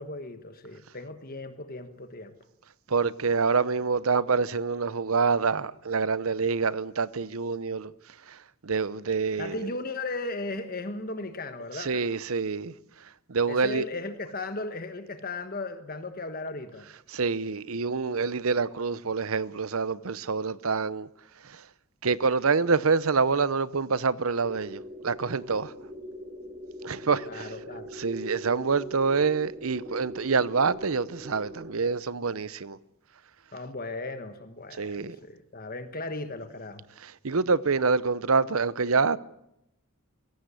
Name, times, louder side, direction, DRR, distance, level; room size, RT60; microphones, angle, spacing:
voice 1, 0.0-2.3 9.4-12.1 13.5-16.9 27.3-27.9 33.5-36.8, left 2 dB, 40° left, 1.3 m, -36 dB
voice 2, 2.9-7.9 8.3-8.4 8.6-9.6 11.8-12.7 13.3-13.9 17.1-21.1 21.5-21.6 22.0-25.7 26.8-27.5 27.9-32.8 34.8-35.2 37.0-39.2, right 4 dB, 75° right, 0.8 m, -26 dB
sound 1, 24.4-31.8, equal, 30° right, 3.6 m, -42 dB
22.5 x 17.0 x 8.3 m
head